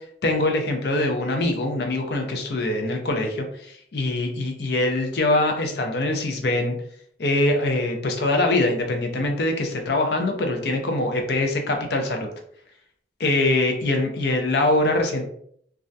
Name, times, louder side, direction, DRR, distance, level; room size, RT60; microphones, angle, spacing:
voice 1, 0.2-6.8 7.2-12.3 13.2-15.3, left 2 dB, 65° left, 4 dB, 0.5 m, -23 dB
2.3 x 2.1 x 2.5 m, 0.66 s
head